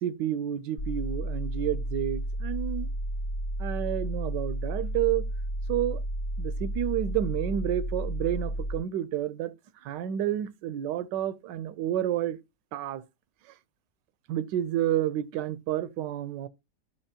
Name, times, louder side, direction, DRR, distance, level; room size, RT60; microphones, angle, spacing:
voice 1, 0.0-2.9 3.6-5.2 5.7-6.0 6.4-9.5 9.8-12.4 12.7-13.0 14.3-16.5, right 11 dB, 85° right, 1.3 m, -30 dB
sound 1, 0.8-8.8, right 1 dB, 45° left, 0.8 m, -32 dB
9.9 x 6.1 x 2.8 m
omnidirectional pair, 1.9 m